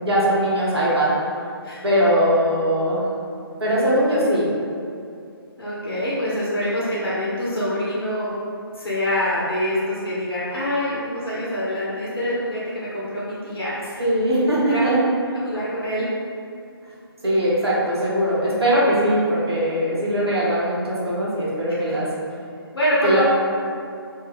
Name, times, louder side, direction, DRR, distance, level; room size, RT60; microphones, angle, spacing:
voice 1, 0.0-1.1 1.8-3.0 3.6-4.5 14.0-15.0 17.2-22.1 23.0-23.2, equal, 80° right, -8 dB, 1.0 m, -20 dB
voice 2, 5.6-8.3 8.7-14.0 14.7-14.8 15.4-16.1 22.7-23.2, left 1 dB, 70° left, -8 dB, 0.8 m, -25 dB
2.6 x 2.2 x 3.2 m, 2.4 s
figure-of-eight pair, 140°, 13 cm